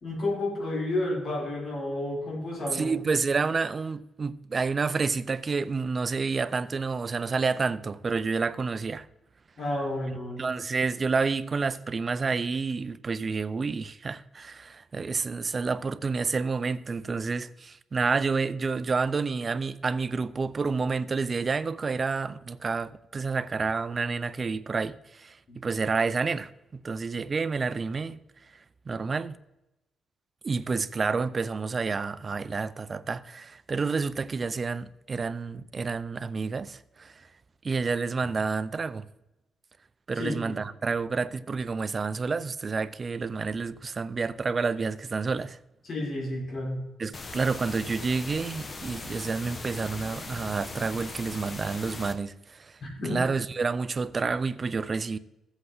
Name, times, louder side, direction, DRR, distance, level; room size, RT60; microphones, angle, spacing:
voice 1, 0.0-2.9 9.6-10.5 25.5-25.6 40.2-40.5 45.8-46.8 52.8-53.2, left 1 dB, 50° left, 4.2 m, -31 dB
voice 2, 2.7-9.1 10.4-28.2 28.9-29.3 30.4-37.3 37.6-39.1 40.1-45.6 47.0-52.8 53.0-55.2, right 4 dB, 35° right, 0.5 m, -29 dB
sound 1, 47.1-52.1, left 3 dB, 35° left, 1.1 m, -39 dB
15.0 x 8.0 x 4.0 m
cardioid pair, 105°, 0 cm